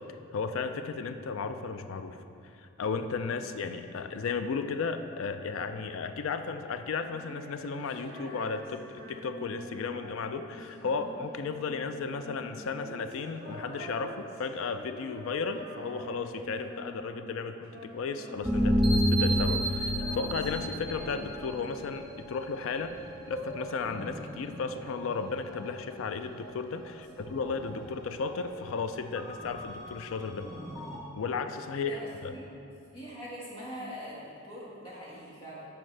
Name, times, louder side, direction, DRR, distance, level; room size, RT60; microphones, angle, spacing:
voice 1, 0.3-2.2 2.6-8.8 9.1-23.0 23.3-30.5 31.1-32.3, left 5 dB, 65° left, 9 dB, 0.4 m, -34 dB
Female singing, 7.0-17.4 17.6-19.3 19.6-22.2, right 1 dB, 45° right, 1.3 m, -46 dB
voice 2, 10.8-11.2 26.9-27.6 31.8-32.5 32.9-35.7, equal, 25° left, -8 dB, 1.6 m, -44 dB
sound 1, 18.4-22.4 22.8-26.0 26.4-26.5 26.9-28.0 28.3-28.4 29.2-31.0, equal, ahead, 0.7 m, -31 dB
10.0 x 4.4 x 3.3 m, 2.7 s
head